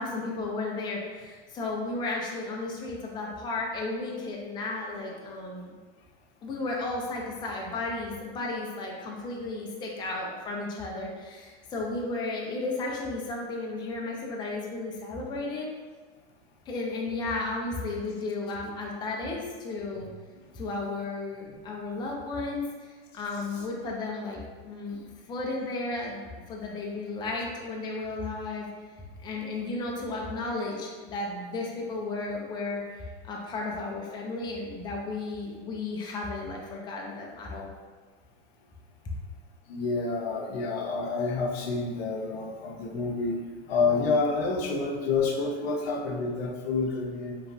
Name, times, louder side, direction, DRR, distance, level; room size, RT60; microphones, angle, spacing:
voice 1, 0.0-5.8 6.4-15.7 16.7-20.1 20.5-28.7 29.2-37.7, left 3 dB, 15° left, -2 dB, 0.3 m, -34 dB
voice 2, 39.7-43.4 43.7-47.4, left 4 dB, 85° left, 1 dB, 0.5 m, -28 dB
2.9 x 2.3 x 2.5 m, 1.4 s
supercardioid pair, 120°, 30 cm